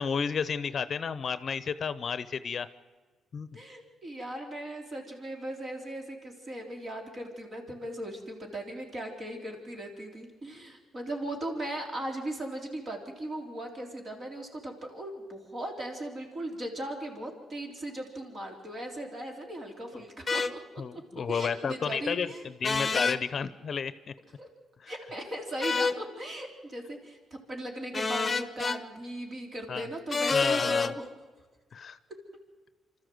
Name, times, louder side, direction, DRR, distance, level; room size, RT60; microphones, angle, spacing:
voice 1, 0.0-2.7 3.3-3.5 19.9-20.0 20.8-24.1 24.8-24.9 29.7-29.9 30.3-30.9 31.7-32.0, left 6 dB, 50° left, 14 dB, 0.8 m, -32 dB
voice 2, 3.5-20.4 21.3-22.4 22.8-23.0 24.4-24.5 24.9-31.1, right 1 dB, 40° right, 2 dB, 3.6 m, -38 dB
sound 1, 20.3-20.5 22.6-23.2 25.6-26.0 27.9-28.8 30.1-30.9, left 4 dB, 25° left, 1.0 m, -27 dB
25.5 x 13.5 x 7.8 m, 1.4 s
cardioid pair, 90°, 0 cm